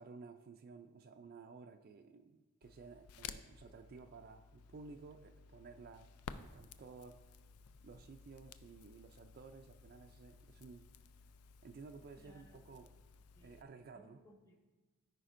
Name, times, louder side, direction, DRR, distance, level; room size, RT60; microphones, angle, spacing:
voice 1, 0.0-7.3 7.8-10.9 11.6-12.9 13.4-14.2, right 4 dB, 45° right, 6 dB, 0.3 m, -55 dB
Crackle, 2.6-13.6, left 6 dB, 90° left, 0.4 m, -55 dB
voice 2, 12.2-12.9 13.4-13.7 13.9-14.6, equal, 15° left, 3 dB, 0.8 m, -64 dB
14.0 x 5.0 x 2.5 m, 1.2 s
head